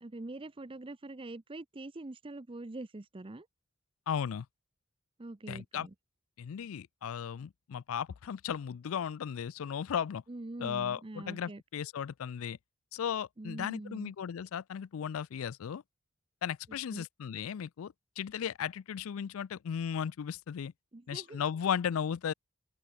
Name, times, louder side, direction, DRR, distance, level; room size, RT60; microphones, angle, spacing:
voice 1, 0.0-3.5 5.2-5.9 10.3-11.6 13.4-14.1 16.9-17.0 20.9-21.4, right 2 dB, 25° right, 0.6 m, -44 dB
voice 2, 4.1-4.5 5.5-5.9 6.4-10.2 10.6-12.6 12.9-15.8 16.4-20.7 21.1-22.3, left 8 dB, 80° left, 0.4 m, -36 dB
open air
head